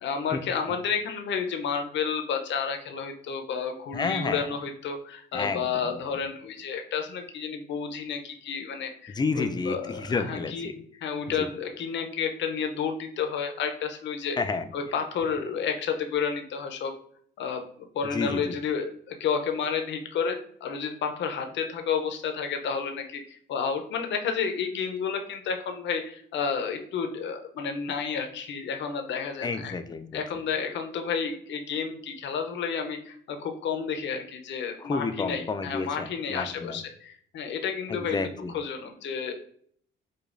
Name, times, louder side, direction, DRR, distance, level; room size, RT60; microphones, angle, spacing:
voice 1, 0.0-10.7 11.0-14.4 14.7-16.9 17.4-29.7 30.1-39.3, left 6 dB, 65° left, 6 dB, 0.6 m, -31 dB
voice 2, 3.9-4.5 5.3-5.6 9.2-10.7 11.4-11.5 14.4-14.6 18.1-18.5 29.4-30.2 34.8-36.8 37.9-38.5, left 4 dB, 20° left, 9 dB, 0.4 m, -30 dB
4.9 x 2.3 x 2.5 m, 0.62 s
cardioid pair, 90°, 20 cm